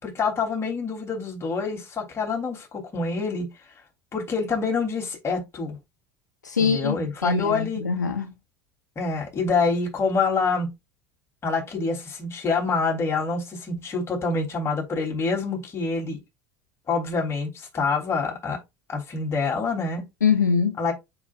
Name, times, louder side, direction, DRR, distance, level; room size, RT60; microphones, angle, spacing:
voice 1, 0.0-3.5 4.1-5.8 6.6-7.8 8.9-10.7 11.4-16.2 16.9-18.6 18.9-20.0 20.8-20.9, left 4 dB, 30° left, 3.3 m, -26 dB
voice 2, 6.4-7.0 7.2-8.3 20.2-20.8, left 6 dB, 80° left, 0.7 m, -23 dB
7.1 x 6.1 x 2.5 m
figure-of-eight pair, 70°, 9 cm